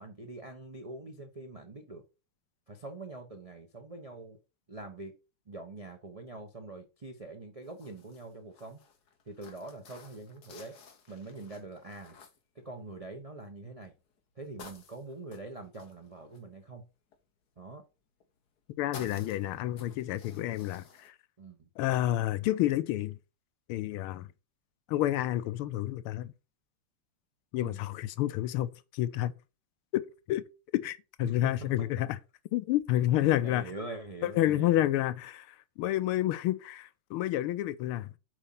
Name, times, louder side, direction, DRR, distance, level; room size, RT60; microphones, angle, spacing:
voice 1, 0.0-2.0 2.7-4.4 4.7-5.2 5.5-8.8 9.3-10.8 11.1-12.2 12.5-13.9 14.4-16.8 17.6-17.8 19.0-19.3 20.3-20.5 21.4-21.7 27.6-27.8 31.2-31.9 33.2-34.8, right 2 dB, 55° right, 0.4 m, -44 dB
sound 1, 7.6-13.2 13.8-14.2 14.6-17.2 18.2-18.6 18.9-21.1, left 5 dB, 50° left, 1.6 m, -53 dB
voice 2, 18.8-21.1 21.8-23.2 23.7-24.3 24.9-26.3 27.5-29.3 29.9-30.0 30.3-30.4 30.7-32.2 32.5-33.7 34.2-38.2, left 14 dB, 85° left, 1.5 m, -29 dB
7.9 x 4.3 x 5.6 m
omnidirectional pair, 2.4 m